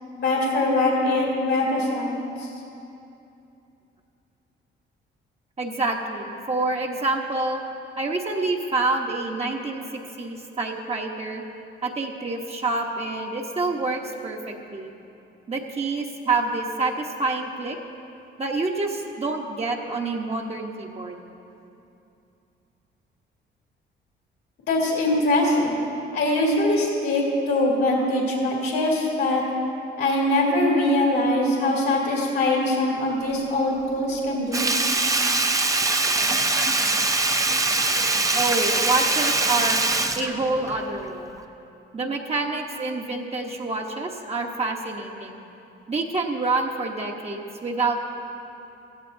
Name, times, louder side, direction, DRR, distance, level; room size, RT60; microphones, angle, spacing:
voice 1, 0.2-2.2 24.7-25.8 26.1-29.4 30.0-34.7, left 1 dB, 75° left, -3 dB, 2.4 m, -22 dB
voice 2, 5.6-7.6 8.0-11.4 11.8-14.9 15.5-17.8 18.4-21.2 31.7-31.9 38.3-39.8 40.1-41.3 41.9-45.4 45.9-48.1, right 3 dB, 30° right, 0 dB, 1.2 m, -27 dB
Sink (filling or washing), 34.5-41.0 41.4-41.5, right 2 dB, 15° right, 0.6 m, -23 dB
15.5 x 14.5 x 2.7 m, 2.8 s
cardioid pair, 90°, 20 cm